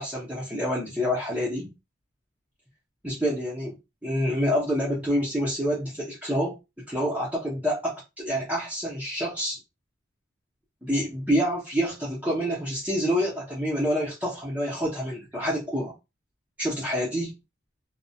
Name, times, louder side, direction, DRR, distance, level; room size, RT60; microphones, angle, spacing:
voice 1, 0.0-1.7 3.0-3.7 4.0-6.5 6.9-9.6 10.8-15.9 16.6-17.3, equal, 10° right, 0.7 m, -27 dB
2.3 x 2.1 x 2.7 m
head